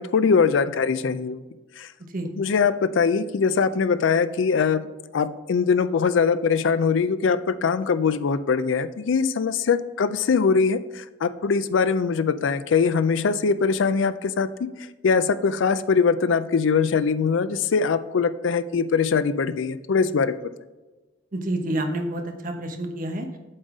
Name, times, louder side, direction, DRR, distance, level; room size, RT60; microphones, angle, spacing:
voice 1, 0.0-1.4 1.8-1.9 2.4-14.5 15.0-20.4, left 5 dB, 75° left, 13 dB, 0.4 m, -22 dB
voice 2, 21.3-23.4, right 1 dB, 45° right, 4 dB, 1.0 m, -28 dB
7.7 x 4.0 x 4.9 m, 1.2 s
head